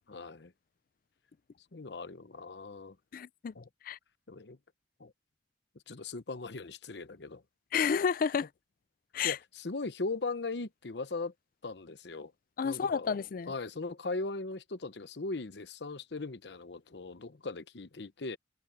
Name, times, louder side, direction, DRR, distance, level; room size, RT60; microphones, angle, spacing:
voice 1, 0.1-0.5 1.7-3.0 3.5-3.7 4.3-4.6 5.0-5.1 5.9-7.4 9.2-11.3 11.6-12.3 12.6-13.2 13.5-18.4, left 3 dB, 70° left, 0.9 m, -39 dB
voice 2, 3.1-3.5 3.8-4.0 7.7-8.5 9.1-9.4 12.6-13.5, left 6 dB, 50° left, 0.4 m, -30 dB
head